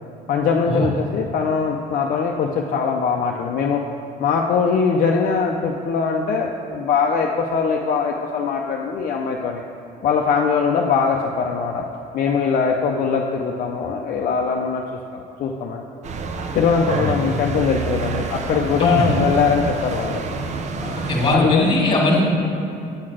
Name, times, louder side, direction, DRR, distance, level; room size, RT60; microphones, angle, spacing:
voice 1, 0.3-3.8 4.2-9.6 10.0-11.8 12.1-14.8 15.1-15.8 16.5-20.2 20.8-20.9 21.3-21.7, left 5 dB, 55° left, 0 dB, 0.6 m, -21 dB
sound 1, 16.0-21.4, right 4 dB, 45° right, 0.6 m, -28 dB
voice 2, 18.8-19.2 21.1-22.2, left 2 dB, 30° left, -2 dB, 1.8 m, -19 dB
8.7 x 3.9 x 6.3 m, 2.7 s
cardioid pair, 110°, 17 cm